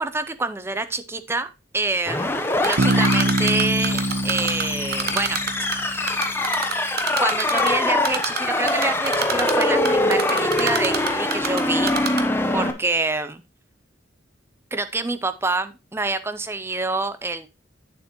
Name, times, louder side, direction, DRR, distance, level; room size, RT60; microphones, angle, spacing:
voice 1, 0.0-6.3 7.2-12.0 12.5-13.4 14.7-17.5, right 3 dB, 15° right, 12 dB, 0.4 m, -27 dB
sound 1, 2.1-12.7, left 2 dB, 10° left, 0.8 m, -24 dB
Typing, 2.6-4.6 4.9-5.8 6.1-7.7 8.0-8.4 8.7-11.6 11.9-12.2, right 6 dB, 55° right, 1.0 m, -25 dB
Bass guitar, 2.8-6.5, right 1 dB, 85° right, 0.9 m, -25 dB
8.7 x 7.0 x 3.0 m, 0.27 s
head